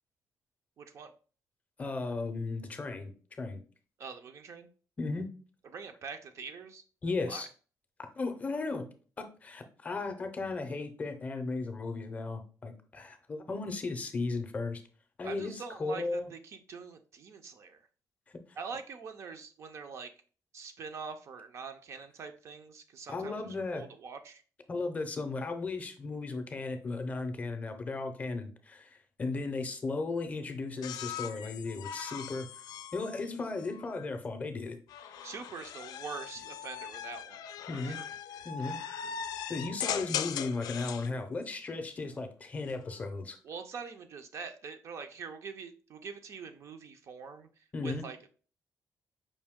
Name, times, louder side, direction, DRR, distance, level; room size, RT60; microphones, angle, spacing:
voice 1, 0.8-1.1 4.0-4.7 5.7-6.8 7.3-7.4 15.2-17.8 18.6-20.1 20.5-23.5 23.7-24.4 35.2-37.4 37.7-38.0 43.4-47.5 47.8-48.3, right 5 dB, 45° right, 7 dB, 0.5 m, -44 dB
voice 2, 1.8-3.1 3.4-3.6 5.0-5.3 7.0-7.5 8.2-8.9 9.2-14.8 15.2-16.3 23.1-23.8 24.7-32.5 32.9-34.8 37.7-38.0 38.4-38.8 39.5-43.4 47.7-48.0, left 3 dB, 25° left, 6 dB, 0.5 m, -35 dB
sound 1, 30.8-34.1 34.9-41.1 42.6-43.1, left 9 dB, 85° left, 0.3 m, -40 dB
5.2 x 2.6 x 3.5 m, 0.39 s
cardioid pair, 175°, 6 cm